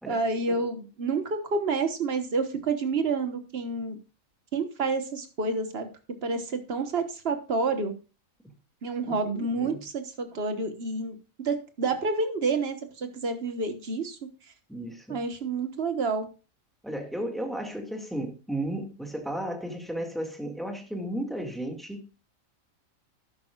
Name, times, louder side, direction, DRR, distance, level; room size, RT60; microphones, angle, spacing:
voice 1, 0.1-4.0 4.5-5.9 6.2-7.9 8.8-11.2 11.4-14.2 15.1-16.3, right 4 dB, 50° right, 8 dB, 1.5 m, -29 dB
voice 2, 9.1-9.8 14.7-15.2 16.8-22.1, right 1 dB, ahead, 2 dB, 2.0 m, -34 dB
12.5 x 10.5 x 2.4 m, 0.31 s
omnidirectional pair, 1.4 m